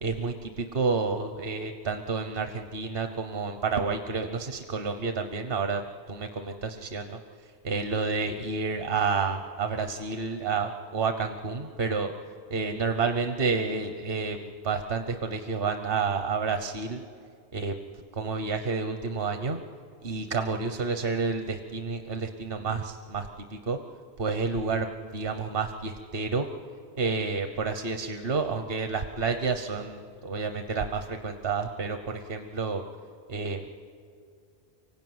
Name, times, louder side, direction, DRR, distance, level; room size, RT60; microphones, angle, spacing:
voice 1, 0.0-5.8 6.1-7.2 7.6-12.1 12.5-17.0 17.5-17.7 18.1-19.6 20.0-23.8 24.2-26.5 27.0-32.8 33.3-33.7, right 4 dB, 60° right, 7 dB, 1.2 m, -30 dB
25.0 x 16.5 x 9.4 m, 2.3 s
omnidirectional pair, 1.1 m